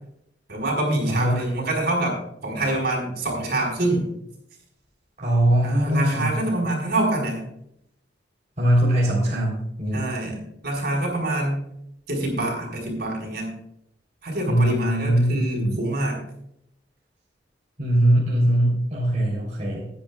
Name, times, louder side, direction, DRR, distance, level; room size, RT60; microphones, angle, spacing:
voice 1, 0.5-4.1 5.6-7.4 9.9-11.6 12.1-13.5 14.2-16.2, right 1 dB, 60° right, 1 dB, 4.9 m, -26 dB
voice 2, 1.0-1.4 5.2-6.3 8.6-10.1 14.5-15.8 17.8-19.9, right 1 dB, 40° right, -6 dB, 3.5 m, -21 dB
20.0 x 9.9 x 2.4 m, 0.74 s
head